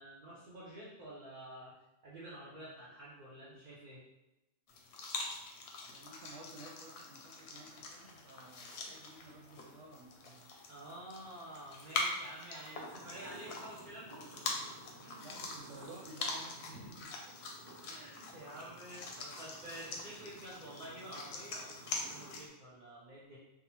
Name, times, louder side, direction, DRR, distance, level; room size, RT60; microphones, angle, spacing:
voice 1, 0.0-1.7 2.0-4.0 10.7-14.3 15.0-15.3 16.7-16.8 17.8-23.4, right 1 dB, 50° right, -7 dB, 0.6 m, -49 dB
sound 1, 4.7-22.5, left 3 dB, 70° left, 0.8 m, -44 dB
voice 2, 5.8-10.5 12.1-12.3 15.2-17.1, right 2 dB, 90° right, -2 dB, 0.9 m, -53 dB
sound 2, 12.9-22.4, right 1 dB, 30° right, 1.1 m, -55 dB
3.6 x 2.0 x 2.9 m, 0.97 s
omnidirectional pair, 1.3 m